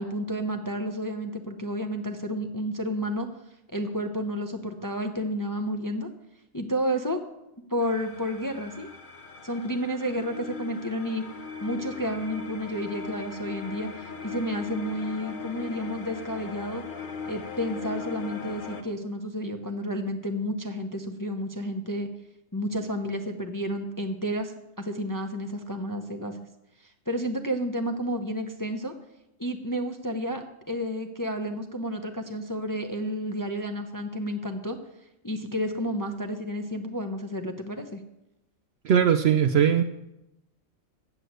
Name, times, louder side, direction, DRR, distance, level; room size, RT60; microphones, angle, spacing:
voice 1, 0.0-3.3 3.7-6.1 6.5-7.2 7.7-8.9 9.4-11.2 11.6-16.8 17.2-22.1 22.5-26.4 26.8-28.9 29.4-34.8 35.2-38.0, equal, 20° left, 4 dB, 0.5 m, -31 dB
sound 1, 7.8-18.8, left 5 dB, 45° left, 0.8 m, -39 dB
voice 2, 38.8-39.8, right 8 dB, 65° right, 9 dB, 0.7 m, -20 dB
8.0 x 7.8 x 7.9 m, 0.89 s
omnidirectional pair, 1.4 m